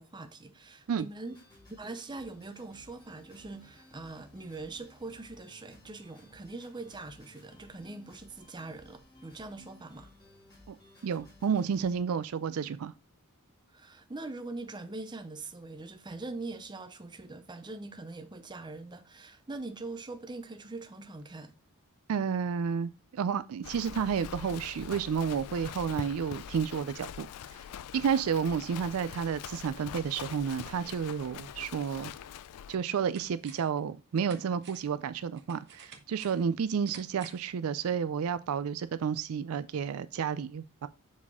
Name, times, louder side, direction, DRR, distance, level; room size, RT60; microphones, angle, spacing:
voice 1, 0.0-1.4 1.8-10.1 13.7-21.5, right 3 dB, 20° right, 0.6 m, -42 dB
sound 1, 1.2-12.0, left 1 dB, 20° left, 2.0 m, -58 dB
voice 2, 11.0-12.9 22.1-27.3 27.5-27.6 27.9-32.1 32.7-40.9, right 7 dB, 65° right, 0.4 m, -31 dB
Livestock farm animals working animals, 23.6-32.8, left 9 dB, 80° left, 0.4 m, -44 dB
sound 2, 32.2-32.3 32.7-33.8 34.2-37.6 37.9-38.0, right 6 dB, 50° right, 1.0 m, -53 dB
7.3 x 4.1 x 3.5 m
head